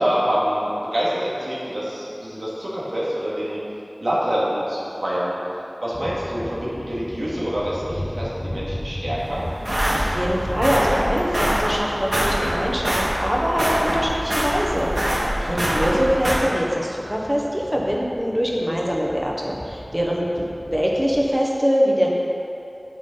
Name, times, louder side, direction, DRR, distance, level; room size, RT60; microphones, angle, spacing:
voice 1, 0.0-3.6 4.0-5.4 5.8-9.5 15.5-15.7, equal, 90° right, -8 dB, 2.1 m, -26 dB
sound 1, 5.9-21.3, left 1 dB, 30° left, 0.7 m, -36 dB
sound 2, 9.2-16.3, equal, 70° right, 1.7 m, -24 dB
voice 2, 9.9-22.1, equal, 10° right, -3 dB, 1.2 m, -23 dB
9.2 x 7.3 x 4.0 m, 2.7 s
wide cardioid pair, 40°, 0 cm